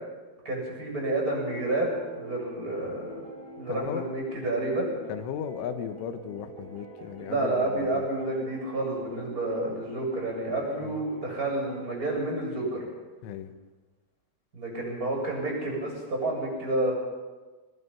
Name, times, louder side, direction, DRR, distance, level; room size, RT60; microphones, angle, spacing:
voice 1, 0.4-1.9 2.1-4.9 7.2-12.8 14.5-16.9, right 2 dB, 15° right, -1 dB, 8.1 m, -30 dB
sound 1, 1.3-12.3, right 1 dB, 5° left, 4.2 m, -46 dB
voice 2, 3.7-4.1 5.1-8.1 10.8-11.0 13.2-13.5, left 9 dB, 85° left, 9 dB, 3.8 m, -36 dB
26.0 x 20.0 x 5.8 m, 1.3 s
omnidirectional pair, 5.5 m